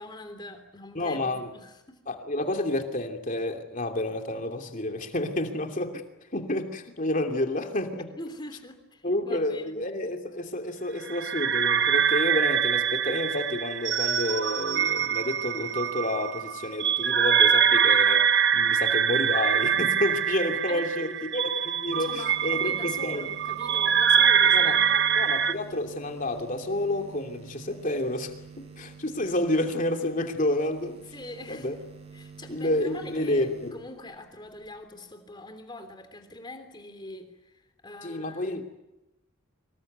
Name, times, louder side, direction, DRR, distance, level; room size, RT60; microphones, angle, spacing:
voice 1, 0.0-2.0 8.1-9.9 20.7-21.2 22.0-25.2 31.1-31.7 32.1-38.6, left 1 dB, 20° left, 7 dB, 3.4 m, -43 dB
voice 2, 0.9-1.5 2.1-6.0 6.3-8.1 9.0-23.3 24.4-24.8 25.1-31.0 31.5-31.7 32.5-33.8 38.0-38.6, left 1 dB, 40° left, 4 dB, 2.9 m, -30 dB
sound 1, 11.1-25.5, right 8 dB, 55° right, 1.1 m, -24 dB
sound 2, 21.9-34.8, right 5 dB, 30° right, 6.7 m, -48 dB
25.5 x 21.5 x 9.4 m, 0.94 s
head